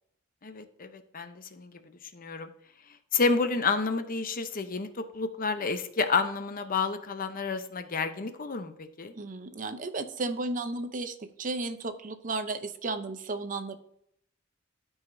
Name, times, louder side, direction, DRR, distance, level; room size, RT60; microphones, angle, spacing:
voice 1, 0.4-1.8 2.1-2.5 3.1-8.7 9.0-9.1, left 4 dB, 45° left, 9 dB, 0.7 m, -30 dB
voice 2, 9.1-13.7, right 3 dB, 40° right, 9 dB, 0.7 m, -34 dB
13.0 x 4.8 x 2.6 m, 0.72 s
head